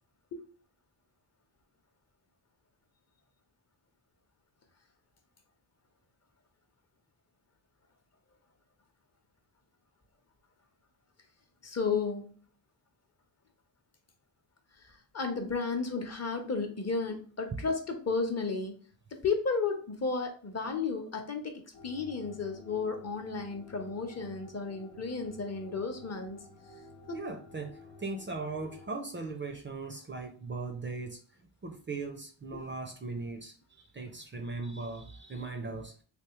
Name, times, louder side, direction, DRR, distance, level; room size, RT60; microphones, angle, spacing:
voice 1, 11.6-12.3 15.1-18.8 19.1-26.4 32.5-32.6, left 4 dB, 35° left, 0.8 m, -33 dB
sound 1, 21.7-28.9, left 1 dB, 85° left, 0.8 m, -52 dB
voice 2, 27.1-31.2 31.6-35.9, right 3 dB, 25° right, 0.5 m, -39 dB
3.4 x 2.7 x 3.0 m
cardioid pair, 90°, 43 cm